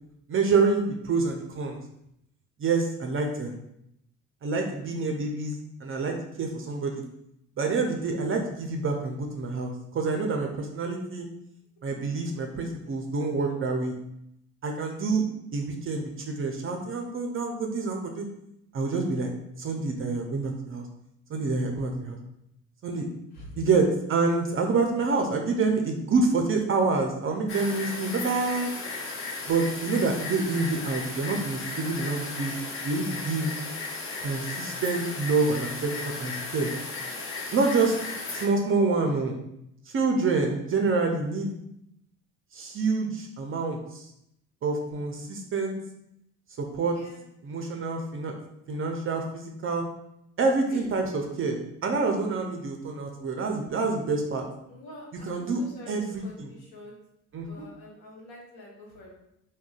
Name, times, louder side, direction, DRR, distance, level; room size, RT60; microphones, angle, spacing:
voice 1, 0.3-1.8 2.6-3.5 4.4-7.0 7.6-11.3 11.8-14.0 14.6-15.2 15.5-18.3 18.7-19.3 19.6-20.8 21.3-22.2 22.8-23.1 23.5-28.7 29.5-33.5 34.2-36.7 37.5-37.9 38.3-39.4 39.9-41.5 42.5-44.0 44.6-45.7 46.6-47.0 47.4-48.3 48.7-49.8 50.4-54.4 55.2-56.5 57.3-57.7, right 3 dB, 30° right, 2 dB, 0.5 m, -27 dB
sound 1, 27.5-38.5, left 3 dB, 30° left, 0.6 m, -35 dB
voice 2, 54.7-55.9 56.2-56.9 57.5-59.1, left 1 dB, 60° left, -2 dB, 1.0 m, -46 dB
3.6 x 2.2 x 2.3 m, 0.79 s
hypercardioid pair, 55°, 42 cm